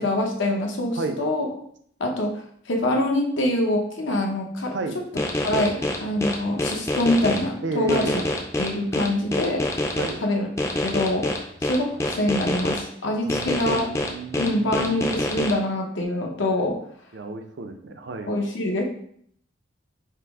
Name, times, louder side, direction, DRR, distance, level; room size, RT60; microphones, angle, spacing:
voice 1, 0.0-1.5 2.0-4.7 5.4-8.2 8.6-9.6 10.2-10.5 10.8-13.9 14.4-16.8 18.3-18.8, left 1 dB, 80° left, 2 dB, 0.8 m, -25 dB
sound 1, 5.2-7.4 7.9-10.1 10.6-12.8 13.3-15.5, left 1 dB, 15° left, 0.4 m, -25 dB
voice 2, 7.6-8.2 10.0-10.2 13.2-15.3 17.1-18.3, right 3 dB, 65° right, 7 dB, 0.4 m, -32 dB
5.6 x 2.0 x 3.5 m, 0.65 s
head